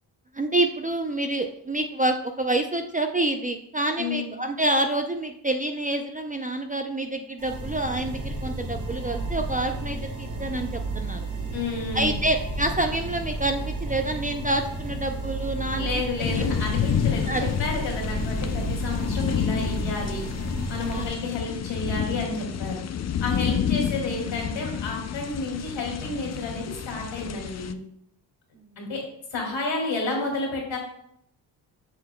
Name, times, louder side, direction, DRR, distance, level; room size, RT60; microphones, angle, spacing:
voice 1, 0.3-11.2 11.9-16.4 16.8-16.9 17.3-17.4 20.9-21.1 28.6-28.7, right 1 dB, 20° right, 5 dB, 0.5 m, -27 dB
sound 1, 7.4-21.1, right 2 dB, 35° right, 1.5 m, -32 dB
voice 2, 11.5-12.2 15.7-20.2 20.7-27.8 28.8-29.0 29.3-30.8, left 3 dB, 65° left, 0 dB, 2.5 m, -31 dB
sound 2, 16.2-27.7, left 9 dB, 35° left, 0.4 m, -29 dB
7.3 x 6.1 x 2.2 m, 0.75 s
supercardioid pair, 50°, 47 cm